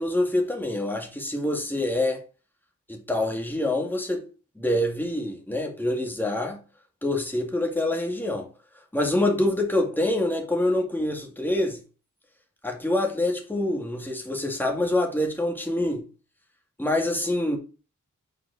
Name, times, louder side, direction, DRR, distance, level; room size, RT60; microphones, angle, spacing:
voice 1, 0.0-2.2 2.9-4.3 4.6-6.6 7.0-8.5 8.9-11.8 12.6-16.0 16.8-17.6, left 1 dB, 5° left, 2.1 m, -26 dB
7.1 x 4.6 x 4.1 m
cardioid pair, 65°, 31 cm